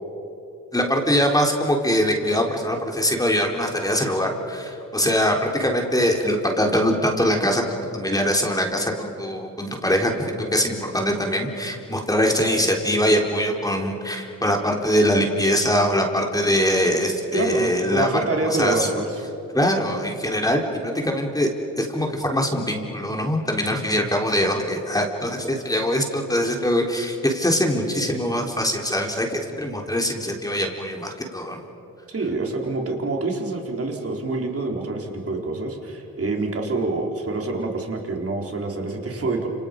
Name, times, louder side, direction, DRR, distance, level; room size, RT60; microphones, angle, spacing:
voice 1, 0.7-18.9 19.5-21.5 21.8-31.6, equal, 10° left, 1 dB, 3.9 m, -22 dB
voice 2, 17.3-19.2 32.1-39.5, right 3 dB, 45° right, 1 dB, 4.3 m, -26 dB
30.0 x 28.0 x 5.4 m, 2.8 s
cardioid pair, 85°, 34 cm